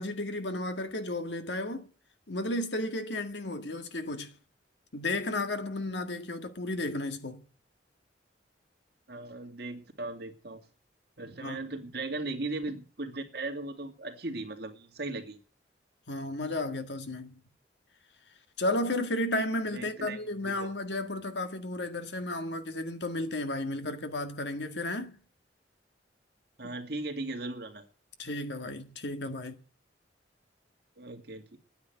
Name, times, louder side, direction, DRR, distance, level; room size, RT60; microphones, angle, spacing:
voice 1, 0.0-1.9 2.3-4.4 4.9-7.4 11.4-11.6 16.1-17.4 18.6-25.2 28.2-29.6, left 1 dB, 75° left, 1.8 m, -33 dB
voice 2, 9.1-10.6 11.2-15.4 19.7-20.7 26.6-27.8 31.0-31.6, right 2 dB, 60° right, 2.3 m, -38 dB
10.5 x 9.6 x 9.4 m
head